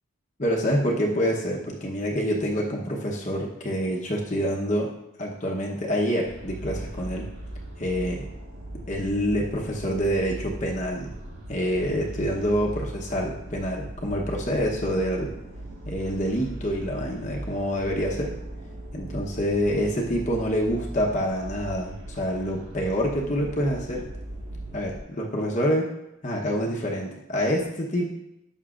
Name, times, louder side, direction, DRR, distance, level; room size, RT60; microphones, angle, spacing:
voice 1, 0.4-4.9 5.2-7.3 7.8-8.3 8.9-11.1 11.5-15.3 15.8-18.3 18.9-24.0 24.7-25.9 26.2-28.1, equal, 35° left, -2 dB, 0.9 m, -26 dB
sound 1, 6.2-25.0, right 1 dB, 65° right, 1.5 m, -38 dB
11.0 x 7.1 x 2.5 m, 0.85 s
head